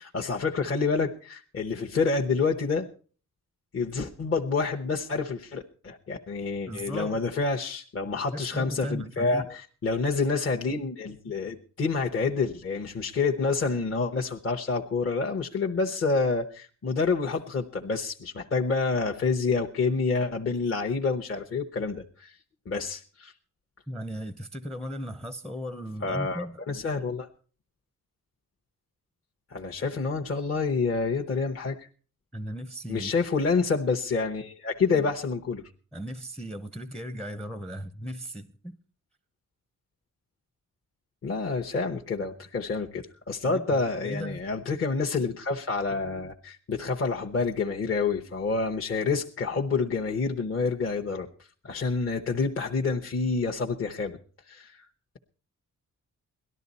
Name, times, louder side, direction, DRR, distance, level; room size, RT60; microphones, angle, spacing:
voice 1, 0.0-2.9 3.7-22.4 22.7-23.3 26.0-27.3 29.5-31.9 32.9-35.6 41.2-54.2 54.5-54.9, left 4 dB, 40° left, 0.9 m, -28 dB
voice 2, 6.7-7.2 8.3-9.5 23.9-26.6 32.3-33.1 35.9-38.8 43.5-44.4, equal, ahead, 0.6 m, -37 dB
18.5 x 12.0 x 4.1 m
wide cardioid pair, 125°, 33 cm